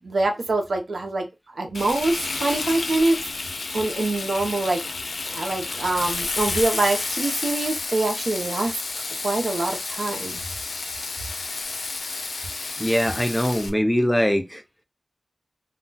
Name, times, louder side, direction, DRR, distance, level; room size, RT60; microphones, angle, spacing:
voice 1, 0.0-4.8 5.2-8.7 9.2-10.4, right 2 dB, 75° right, 0.7 m, -25 dB
Frying (food), 1.7-13.7, left 3 dB, 80° left, 0.4 m, -31 dB
voice 2, 12.8-14.6, equal, 10° left, 0.5 m, -22 dB
2.3 x 2.2 x 3.8 m
wide cardioid pair, 80°, 0 cm